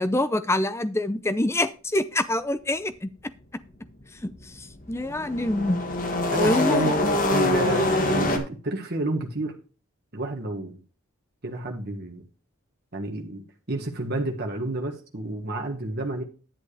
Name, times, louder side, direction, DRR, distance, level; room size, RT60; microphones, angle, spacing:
voice 1, 0.0-3.1 4.2-5.8 6.3-6.9, left 1 dB, 10° left, 0.5 m, -26 dB
sound 1, 4.3-8.4, left 2 dB, 35° left, 1.4 m, -24 dB
voice 2, 6.3-9.5 10.1-10.8 11.4-12.2 12.9-13.4 13.7-16.2, right 2 dB, 45° right, 1.6 m, -30 dB
11.0 x 7.5 x 3.3 m
head